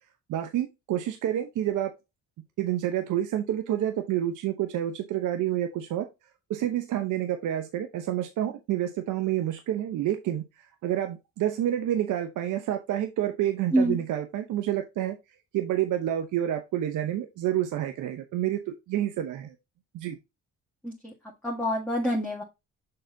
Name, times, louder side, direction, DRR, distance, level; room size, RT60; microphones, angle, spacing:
voice 1, 0.3-1.9 2.6-6.0 6.5-15.2 15.5-19.6 19.9-20.2, right 12 dB, 80° right, 6 dB, 0.9 m, -28 dB
voice 2, 21.4-22.4, equal, 5° left, -4 dB, 1.8 m, -26 dB
6.7 x 4.0 x 3.9 m, 0.23 s
cardioid pair, 90°, 30 cm